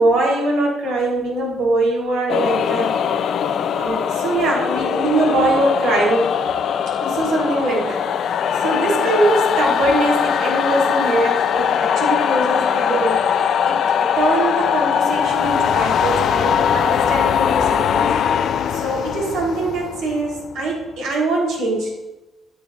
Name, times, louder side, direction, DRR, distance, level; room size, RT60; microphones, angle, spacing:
voice 1, 0.0-2.9 3.7-6.3 7.0-8.3 8.6-13.2 13.7-18.1 18.7-21.9, right 2 dB, 90° right, -3 dB, 3.9 m, -22 dB
sound 1, 2.3-20.8, left 8 dB, 70° left, 0.6 m, -20 dB
13.0 x 12.0 x 2.6 m, 1.0 s
cardioid pair, 90°, 0 cm